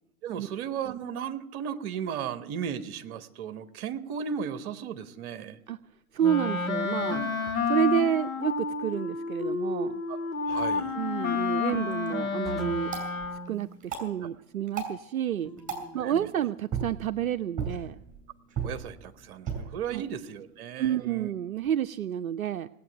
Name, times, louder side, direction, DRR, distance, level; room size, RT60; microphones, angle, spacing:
voice 1, 0.2-5.6 7.0-7.4 10.1-10.2 10.5-10.9 11.7-11.8 14.2-14.3 15.9-16.3 18.6-21.3, right 8 dB, 45° right, 11 dB, 1.2 m, -36 dB
voice 2, 6.1-7.2 7.7-10.0 11.0-12.9 13.5-15.5 15.9-18.0 19.9-20.0 20.8-22.7, right 10 dB, 75° right, 12 dB, 0.6 m, -29 dB
Wind instrument woodwind instrument, 6.2-13.6, left 4 dB, 75° left, 2.0 m, -30 dB
sound 1, 7.4-7.9 10.5-10.9 12.4-13.0 15.4-16.2, left 1 dB, ahead, 1.4 m, -44 dB
sound 2, 11.8-21.8, right 6 dB, 20° right, 5.1 m, -40 dB
18.5 x 8.6 x 9.0 m, 0.86 s
figure-of-eight pair, 100°, 42 cm